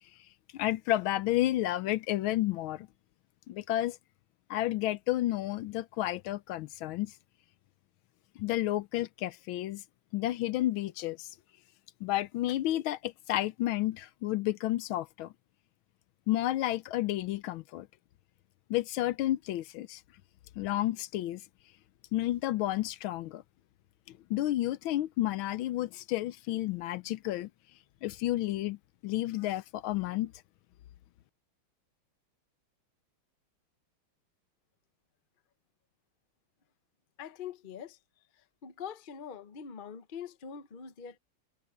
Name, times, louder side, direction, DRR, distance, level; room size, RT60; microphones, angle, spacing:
voice 1, 0.5-2.9 3.5-4.0 4.5-7.1 8.4-9.8 10.1-11.3 12.0-15.3 16.3-17.9 18.7-20.0 20.6-21.4 22.1-23.4 24.3-27.5 28.0-28.8 29.0-30.3, left 15 dB, 80° left, 1.4 m, -31 dB
voice 2, 37.2-38.0 38.6-41.2, left 7 dB, 45° left, 0.6 m, -43 dB
omnidirectional pair, 2.3 m